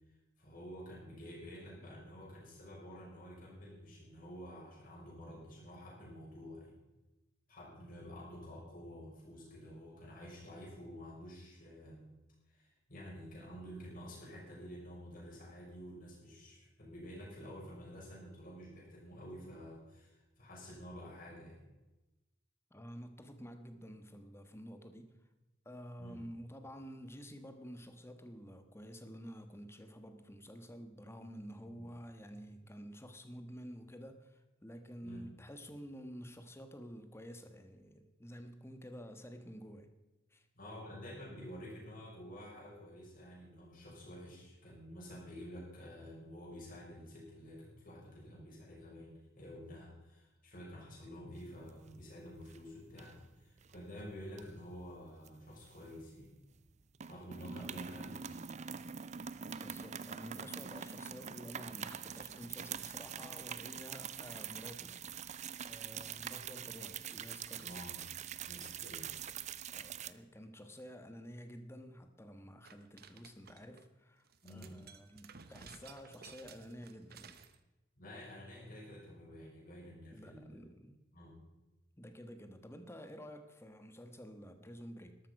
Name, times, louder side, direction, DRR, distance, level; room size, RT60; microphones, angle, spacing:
voice 1, 0.4-6.7 7.5-12.1 12.5-21.6 26.0-26.2 31.7-31.9 35.0-35.2 40.5-56.3 57.1-58.4 67.6-68.0 68.5-69.2 74.4-74.8 78.0-80.6 81.1-81.4, equal, 45° left, -5 dB, 5.9 m, -50 dB
voice 2, 22.7-25.2 25.6-39.9 40.3-40.5 57.6-57.7 59.4-65.3 65.7-67.8 69.7-77.4 80.1-81.0 82.0-85.2, equal, 15° left, 8 dB, 1.2 m, -50 dB
sound 1, 51.4-52.1 52.4-52.6 53.0-53.8 54.3-56.3 56.5-56.7 56.9-70.1, right 8 dB, 40° right, 0.5 m, -44 dB
sound 2, 72.6-73.8 74.3-77.6, right 6 dB, 55° right, 0.9 m, -56 dB
12.5 x 12.5 x 5.3 m, 1.1 s
head